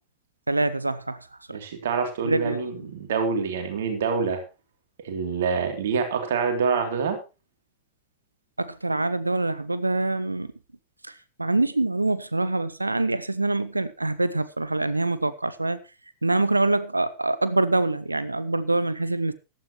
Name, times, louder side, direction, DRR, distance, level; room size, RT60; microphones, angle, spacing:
voice 1, 0.5-1.6 2.2-2.9 8.6-10.5 11.0-15.8 16.2-19.3, right 2 dB, 85° right, 0.7 m, -25 dB
voice 2, 1.5-4.4 5.0-7.2, right 5 dB, 60° right, 3.2 m, -26 dB
15.0 x 12.5 x 3.1 m
figure-of-eight pair, 90°, 0 cm